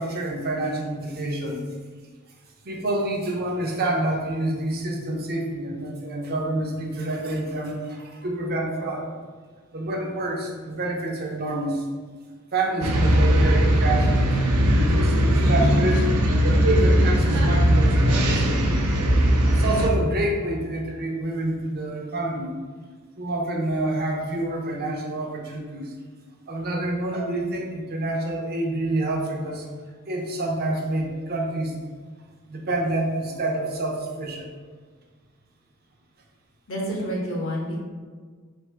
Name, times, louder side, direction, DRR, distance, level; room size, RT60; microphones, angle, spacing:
voice 1, 0.0-1.7 2.6-9.1 9.7-11.9 12.5-14.2 14.7-16.0 16.5-18.9 19.5-22.5 23.2-25.9 26.5-29.7 30.1-31.7 32.5-34.5, right 1 dB, 45° right, 0 dB, 0.7 m, -28 dB
sound 1, 12.8-19.9, equal, 80° right, 0.6 m, -19 dB
voice 2, 36.7-37.8, equal, 60° left, -3 dB, 1.1 m, -28 dB
3.4 x 2.6 x 4.5 m, 1.5 s
head